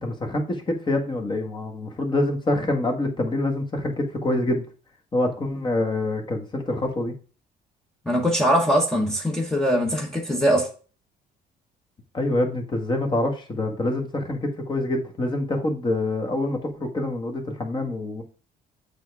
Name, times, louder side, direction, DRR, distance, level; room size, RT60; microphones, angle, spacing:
voice 1, 0.0-4.6 5.1-7.1 12.1-18.2, left 2 dB, 25° left, 1.6 m, -26 dB
voice 2, 8.1-10.7, equal, 5° left, 1.1 m, -22 dB
7.5 x 3.6 x 4.7 m
cardioid pair, 110°, 17 cm